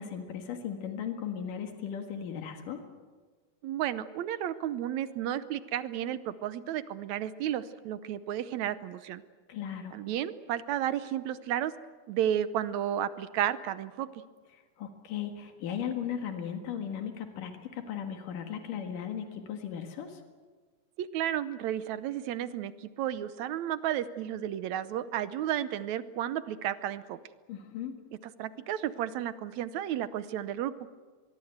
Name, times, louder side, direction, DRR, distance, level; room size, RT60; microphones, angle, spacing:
voice 1, 0.0-2.8 9.5-10.0 14.5-20.2 27.5-28.0, left 8 dB, 90° left, 5 dB, 3.4 m, -37 dB
voice 2, 3.6-9.2 9.9-11.7 12.1-14.1 21.0-27.2 28.4-30.7, right 11 dB, 70° right, 14 dB, 2.0 m, -32 dB
24.0 x 22.0 x 8.0 m, 1.4 s
omnidirectional pair, 3.7 m